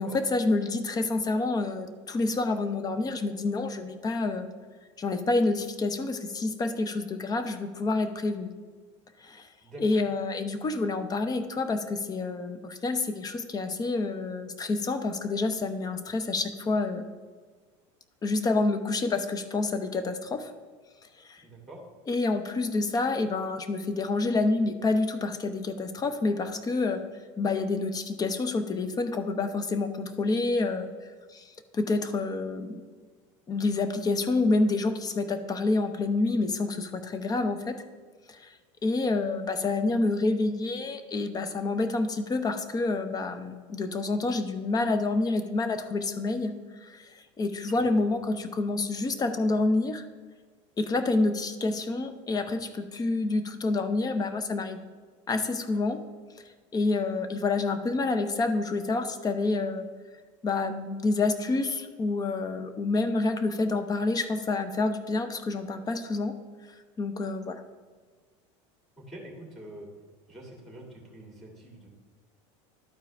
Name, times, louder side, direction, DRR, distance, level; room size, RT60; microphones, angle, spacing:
voice 1, 0.0-4.5 5.0-8.5 9.2-9.5 9.8-17.0 18.2-20.5 21.2-21.4 22.1-27.0 27.4-30.9 31.3-32.8 33.5-37.8 38.3-38.5 38.8-46.5 46.8-50.0 50.8-54.8 55.3-56.0 56.7-59.8 60.4-66.4 67.0-67.6, left 3 dB, 25° left, 10 dB, 0.7 m, -28 dB
voice 2, 21.4-21.8 47.9-48.0 69.0-69.9 70.3-71.9, right 1 dB, ahead, -1 dB, 2.4 m, -45 dB
12.0 x 4.6 x 3.4 m, 1.5 s
supercardioid pair, 115°, 16 cm